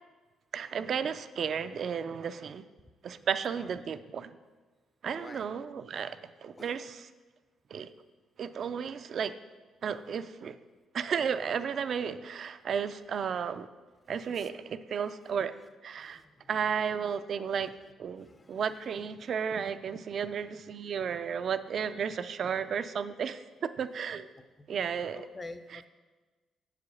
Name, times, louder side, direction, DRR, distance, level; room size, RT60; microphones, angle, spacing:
voice 1, 0.5-2.6 3.0-4.4 5.0-7.1 7.7-7.9 8.4-9.3 9.8-10.6 10.9-13.7 14.1-15.5 15.8-16.2 16.5-17.7 18.0-23.4 23.8-24.3 24.7-25.2, right 7 dB, 55° right, 12 dB, 0.4 m, -33 dB
voice 2, 14.2-14.5 16.0-16.4 18.1-18.6 24.4-24.5 25.1-25.9, left 2 dB, 25° left, 11 dB, 0.6 m, -48 dB
7.6 x 4.9 x 7.0 m, 1.3 s
cardioid pair, 90°, 0 cm